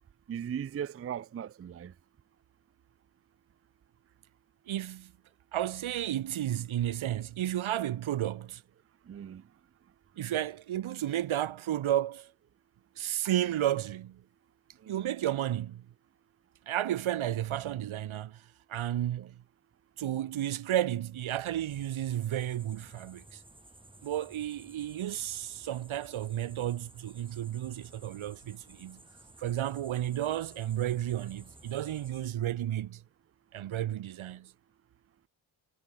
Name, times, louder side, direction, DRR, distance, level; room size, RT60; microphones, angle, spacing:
voice 1, 0.3-1.9 9.1-9.4 14.8-15.1 19.2-19.3, right 8 dB, 30° right, 0.5 m, -38 dB
voice 2, 4.7-5.1 5.5-8.6 10.1-12.3 13.0-14.2 14.9-15.8 16.7-19.4 20.0-23.4 24.0-29.0 29.4-33.0 33.5-34.5, right 12 dB, 85° right, 1.7 m, -32 dB
sound 1, 21.7-32.3, right 1 dB, 10° right, 3.8 m, -55 dB
cardioid pair, 105°, 47 cm